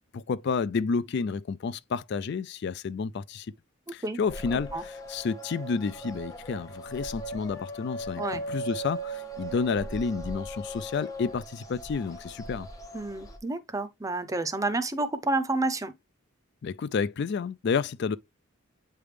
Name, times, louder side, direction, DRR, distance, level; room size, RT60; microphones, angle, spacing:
voice 1, 0.1-3.5 3.9-12.7 16.6-18.2, left 5 dB, 55° left, 0.3 m, -30 dB
sound 1, 4.3-13.4, right 1 dB, 15° left, 0.9 m, -39 dB
voice 2, 4.5-4.8 8.2-8.4 12.9-15.9, right 2 dB, 15° right, 0.6 m, -30 dB
8.7 x 3.4 x 3.3 m
head